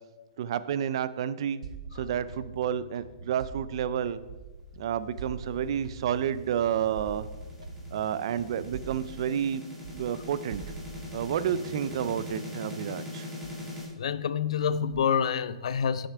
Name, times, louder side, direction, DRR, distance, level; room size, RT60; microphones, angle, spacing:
voice 1, 0.4-1.6 1.9-4.2 4.8-7.3 7.9-9.6 9.9-10.6 11.1-13.3, right 9 dB, 50° right, 0.4 m, -30 dB
sound 1, 1.6-4.7 5.2-9.6 9.8-12.3, right 4 dB, 80° right, 0.8 m, -44 dB
Engine, 3.3-9.2, left 4 dB, 5° left, 1.0 m, -52 dB
sound 2, 5.7-13.8, left 1 dB, 10° right, 1.9 m, -41 dB
voice 2, 13.9-16.1, left 7 dB, 70° left, 0.4 m, -27 dB
9.2 x 6.5 x 3.4 m
hypercardioid pair, 160°, 3 cm